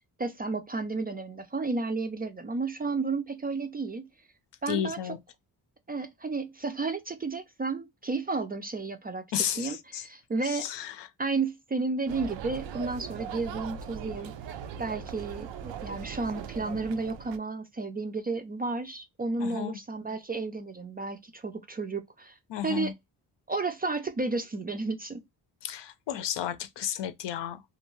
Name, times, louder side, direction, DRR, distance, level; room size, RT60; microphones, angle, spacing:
voice 1, 0.2-4.1 4.6-5.1 5.9-9.2 9.6-10.7 11.2-14.3 14.8-22.4 22.6-22.9 23.5-25.2, right 3 dB, 25° right, 0.3 m, -32 dB
voice 2, 4.7-5.2 9.3-10.0 10.4-11.1 19.4-19.8 22.5-22.9 25.6-27.6, left 10 dB, 75° left, 0.6 m, -33 dB
sound 1, 12.1-17.4, right 8 dB, 90° right, 0.5 m, -39 dB
2.5 x 2.3 x 3.0 m
cardioid pair, 95°, 43 cm